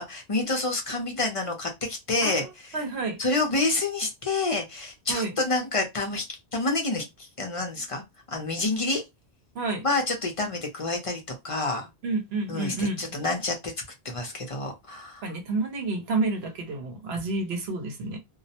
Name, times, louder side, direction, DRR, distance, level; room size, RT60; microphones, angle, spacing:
voice 1, 0.0-2.8 3.2-6.2 6.5-8.0 8.3-9.0 9.8-11.9 12.5-13.7 14.0-15.2, left 2 dB, 40° left, 0.6 m, -28 dB
voice 2, 2.7-3.2 5.1-5.3 9.5-9.8 12.0-13.0 15.2-18.2, right 3 dB, 80° right, 0.9 m, -29 dB
2.3 x 2.0 x 2.7 m
omnidirectional pair, 1.1 m